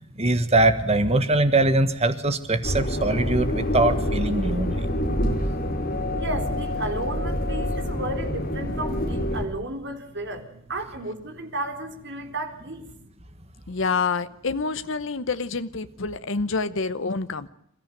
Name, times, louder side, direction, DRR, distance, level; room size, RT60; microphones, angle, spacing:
voice 1, 0.2-4.7, right 2 dB, 30° right, 10 dB, 1.6 m, -22 dB
sound 1, 2.6-9.4, left 1 dB, 45° left, 4.6 m, -26 dB
voice 2, 6.1-12.9, right 1 dB, 55° right, 4 dB, 3.9 m, -33 dB
voice 3, 13.7-17.5, left 4 dB, 65° left, 11 dB, 0.9 m, -27 dB
27.5 x 14.5 x 9.2 m, 0.78 s
head